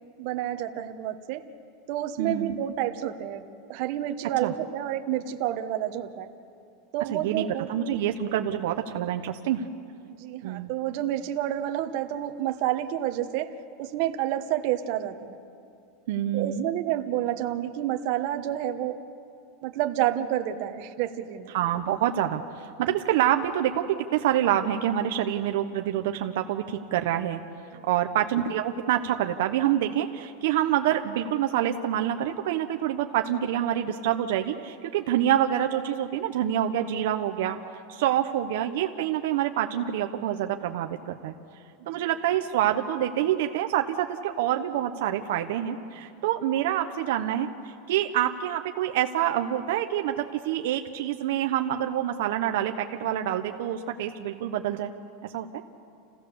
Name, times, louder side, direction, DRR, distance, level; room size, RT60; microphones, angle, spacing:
voice 1, 0.2-1.5 1.9-3.4 3.7-6.3 6.9-8.0 10.1-15.4 16.3-19.0 19.6-21.5 27.7-27.9 41.8-42.1, right 12 dB, 50° right, 7 dB, 1.2 m, -29 dB
voice 2, 2.2-2.6 4.4-4.5 7.1-9.6 10.4-10.7 16.1-16.6 21.5-27.4 27.9-37.6 37.9-41.3 41.9-54.9 55.3-55.5, right 11 dB, 70° right, 5 dB, 0.9 m, -27 dB
29.0 x 16.5 x 7.0 m, 2.5 s
supercardioid pair, 155°, 0 cm